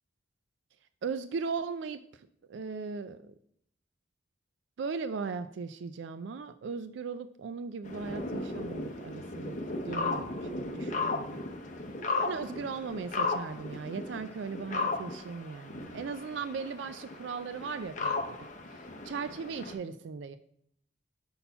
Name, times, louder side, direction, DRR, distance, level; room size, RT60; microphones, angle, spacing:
voice 1, 1.0-3.3 4.8-9.6 9.8-11.4 12.2-18.4 18.7-20.4, right 5 dB, 75° right, 11 dB, 0.4 m, -38 dB
sound 1, 7.8-19.7, left 3 dB, 40° left, 0.7 m, -36 dB
5.6 x 4.2 x 5.5 m, 0.68 s
head